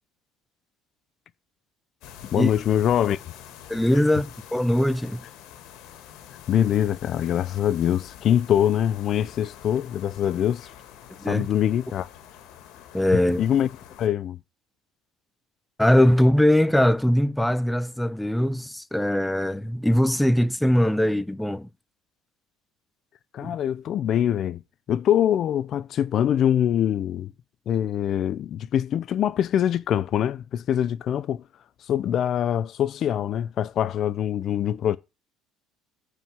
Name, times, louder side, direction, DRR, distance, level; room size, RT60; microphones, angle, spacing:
sound 1, 2.0-14.1, left 10 dB, 70° left, 2.2 m, -46 dB
voice 1, 2.2-3.2 6.5-10.7 11.2-12.1 13.4-13.7 14.0-14.4 23.3-24.6 24.9-27.3 27.7-31.4 31.9-35.0, left 10 dB, 55° left, 0.6 m, -24 dB
voice 2, 3.7-5.2 11.2-11.5 12.9-13.4 15.8-21.7 23.4-23.6, left 1 dB, 5° left, 0.6 m, -21 dB
9.1 x 4.9 x 7.5 m
supercardioid pair, 90°, 0 cm